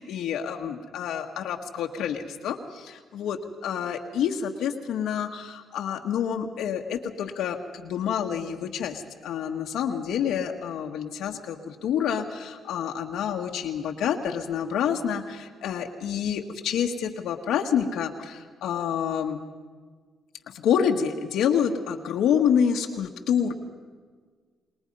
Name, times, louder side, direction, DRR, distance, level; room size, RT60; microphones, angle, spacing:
voice 1, 0.0-19.4 20.5-23.5, left 8 dB, 80° left, 2 dB, 1.5 m, -28 dB
27.5 x 20.5 x 5.5 m, 1.5 s
cardioid pair, 90°, 0 cm